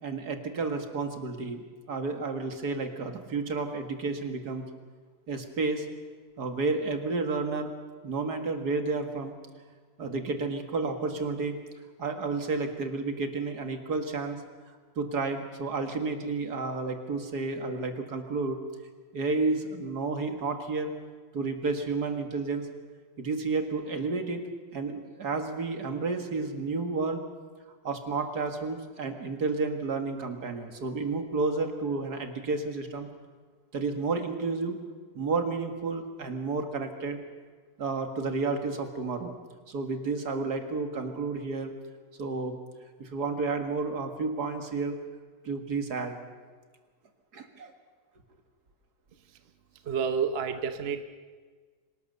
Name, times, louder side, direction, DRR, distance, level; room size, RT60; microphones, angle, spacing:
voice 1, 0.0-4.6 5.3-5.9 6.4-7.7 8.0-9.4 10.0-11.6 12.0-14.4 15.0-18.6 19.1-20.9 21.3-22.7 23.2-24.4 24.7-27.2 27.8-33.1 33.7-34.8 35.1-37.2 37.8-39.3 39.7-41.7 42.2-42.6 43.0-45.0 45.4-46.2 47.3-47.7, right 3 dB, 60° right, 6 dB, 2.5 m, -31 dB
voice 2, 49.9-51.0, right 6 dB, 40° right, 8 dB, 1.0 m, -29 dB
25.5 x 19.0 x 6.9 m, 1.5 s
omnidirectional pair, 1.9 m